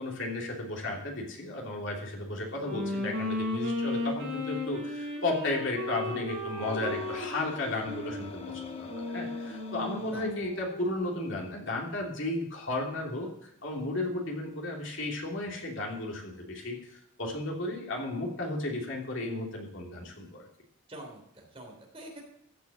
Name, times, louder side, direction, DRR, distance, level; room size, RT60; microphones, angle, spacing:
voice 1, 0.0-20.5, left 2 dB, 60° left, -2 dB, 3.1 m, -34 dB
Wind instrument woodwind instrument, 2.5-11.2, left 2 dB, 60° right, 5.3 m, -35 dB
sound 1, 6.6-10.3, left 2 dB, 25° left, 1.0 m, -45 dB
voice 2, 20.9-22.3, right 1 dB, 25° right, 1 dB, 3.2 m, -46 dB
14.5 x 6.2 x 8.4 m, 0.75 s
head